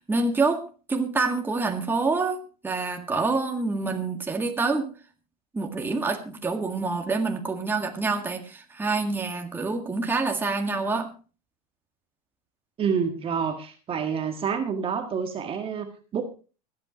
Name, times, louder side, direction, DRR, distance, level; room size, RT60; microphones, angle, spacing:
voice 1, 0.1-0.6 0.9-4.9 5.5-11.1, right 3 dB, 10° right, 3 dB, 1.8 m, -27 dB
voice 2, 12.8-16.2, right 6 dB, 25° right, 5 dB, 1.7 m, -28 dB
24.0 x 8.5 x 3.0 m, 0.35 s
supercardioid pair, 120°, 20 cm